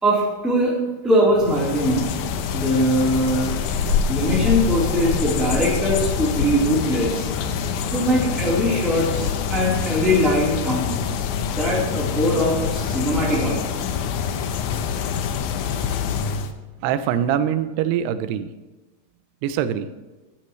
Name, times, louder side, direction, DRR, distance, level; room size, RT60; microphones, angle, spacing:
voice 1, 0.0-0.7 1.0-2.0 2.5-3.5 4.1-7.3 7.9-10.9 11.5-13.6, equal, ahead, -6 dB, 2.9 m, -21 dB
sound 1, 1.3-8.5, equal, 35° right, 2.9 m, -38 dB
sound 2, 1.4-16.5, left 7 dB, 85° left, 1.7 m, -25 dB
voice 2, 16.8-18.5 19.4-19.9, right 9 dB, 85° right, 12 dB, 2.7 m, -23 dB
16.0 x 12.0 x 3.2 m, 1.2 s
omnidirectional pair, 4.7 m